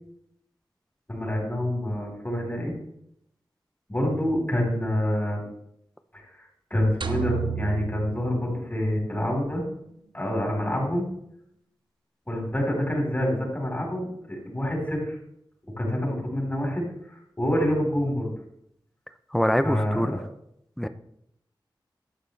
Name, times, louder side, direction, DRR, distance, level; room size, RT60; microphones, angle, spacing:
voice 1, 1.1-2.7 3.9-5.5 6.1-9.6 10.1-11.1 12.3-15.2 15.8-18.3 19.6-20.2, left 1 dB, 20° left, -1 dB, 4.1 m, -27 dB
sound 1, 7.0-9.3, right 7 dB, 70° right, 0.8 m, -33 dB
voice 2, 19.3-20.2 20.8-20.9, equal, 5° left, 11 dB, 0.6 m, -24 dB
12.0 x 8.0 x 3.3 m, 0.75 s
wide cardioid pair, 60°, 8 cm